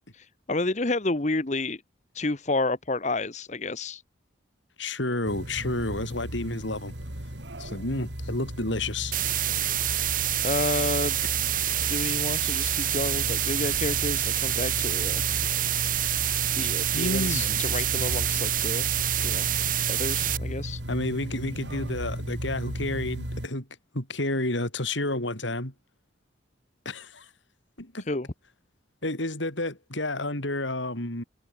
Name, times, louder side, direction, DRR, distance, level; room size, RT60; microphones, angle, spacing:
voice 1, 0.1-1.8 2.1-4.0 10.4-11.2 11.9-15.2 16.6-18.9 19.2-19.5 19.9-20.8 28.1-28.3, left 2 dB, 35° left, 1.1 m, -30 dB
voice 2, 4.8-6.9 7.6-9.1 16.9-17.6 20.9-23.7 23.9-25.7 26.9-27.3 27.8-28.0 29.0-31.2, left 2 dB, 75° left, 5.2 m, -30 dB
sound 1, 5.3-23.5, equal, 65° right, 4.6 m, -35 dB
sound 2, 9.1-20.4, right 12 dB, 45° right, 3.6 m, -27 dB
head